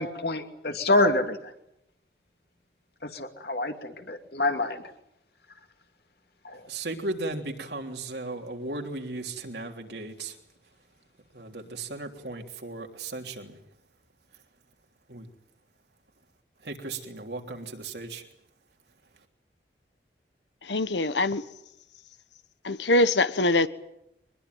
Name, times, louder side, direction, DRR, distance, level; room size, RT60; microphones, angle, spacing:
voice 1, 0.0-1.4 3.0-4.8 6.4-6.5, left 2 dB, 60° left, 2.7 m, -26 dB
voice 2, 6.7-10.4 11.3-13.6 15.1-15.3 16.6-18.2, right 2 dB, 70° right, 3.3 m, -36 dB
voice 3, 20.7-21.4 22.6-23.7, left 2 dB, 80° left, 1.3 m, -23 dB
23.5 x 21.5 x 9.4 m
head